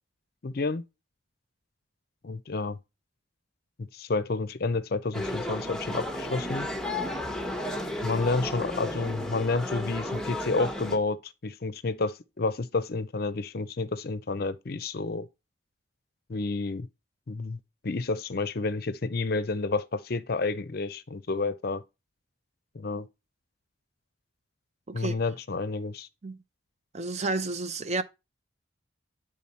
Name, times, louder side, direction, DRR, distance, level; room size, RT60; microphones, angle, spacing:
voice 1, 0.4-0.8 2.2-2.8 3.8-6.7 8.0-15.3 16.3-16.9 17.3-17.6 17.8-21.8 22.7-23.1 24.9-26.1, left 3 dB, 50° left, 0.5 m, -30 dB
sound 1, 5.1-11.0, left 1 dB, 5° left, 0.9 m, -33 dB
voice 2, 24.9-25.2 26.2-26.4 26.9-28.0, right 3 dB, 35° right, 0.6 m, -31 dB
10.0 x 3.8 x 4.2 m
head